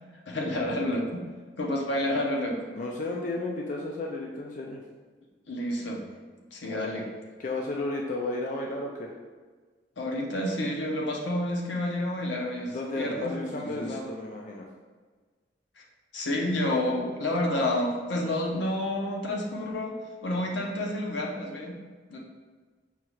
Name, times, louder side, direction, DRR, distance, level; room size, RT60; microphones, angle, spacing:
voice 1, 0.3-1.2 1.6-2.6 5.5-6.0 6.5-7.1 10.0-14.0 15.8-15.9 16.1-20.0 20.2-21.8 22.1-22.2, left 1 dB, 85° left, -1 dB, 0.7 m, -29 dB
voice 2, 2.7-4.8 6.7-7.0 7.4-9.1 12.7-14.6, left 2 dB, 45° left, 0 dB, 0.4 m, -33 dB
5.5 x 2.4 x 3.0 m, 1.4 s
head